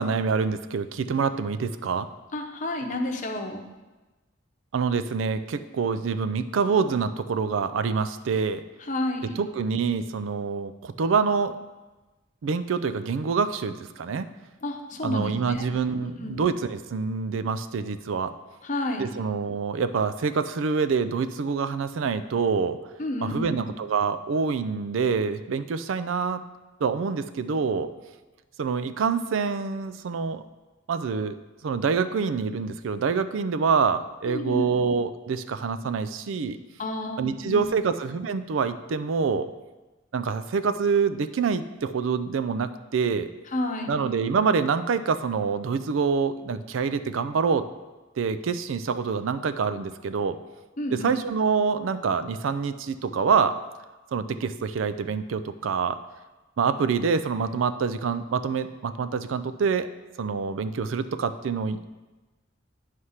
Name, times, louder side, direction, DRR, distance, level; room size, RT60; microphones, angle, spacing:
voice 1, 0.0-2.1 4.7-8.6 9.4-11.5 12.4-14.3 15.0-18.3 19.0-22.8 23.2-26.5 26.8-27.9 28.6-30.4 30.9-31.4 31.6-36.6 37.2-39.5 40.1-43.3 43.9-47.6 48.2-50.4 50.9-53.6 54.1-56.0 56.6-59.9 60.2-61.9, right 5 dB, 75° right, 12 dB, 0.4 m, -26 dB
voice 2, 2.3-3.6 8.9-9.4 14.6-15.6 16.0-16.4 18.6-19.1 23.0-23.7 34.3-34.8 36.8-37.7 43.5-44.0 50.8-51.2, left 1 dB, 40° left, 3 dB, 0.8 m, -31 dB
9.5 x 3.3 x 5.6 m, 1.2 s
head